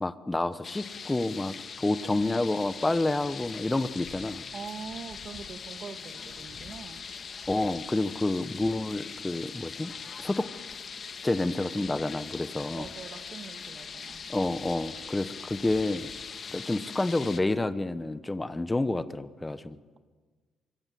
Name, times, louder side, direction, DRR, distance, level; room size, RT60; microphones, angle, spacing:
voice 1, 0.0-4.4 7.5-9.9 10.2-10.5 11.2-12.9 14.3-16.1 16.5-19.8, left 2 dB, 15° left, 13 dB, 1.1 m, -29 dB
sound 1, 0.6-17.4, left 6 dB, 45° left, 1.7 m, -41 dB
voice 2, 1.9-2.4 4.5-7.0 12.7-14.2, right 6 dB, 55° right, 9 dB, 1.8 m, -43 dB
25.0 x 23.5 x 7.7 m, 1.4 s
cardioid pair, 90°, 0 cm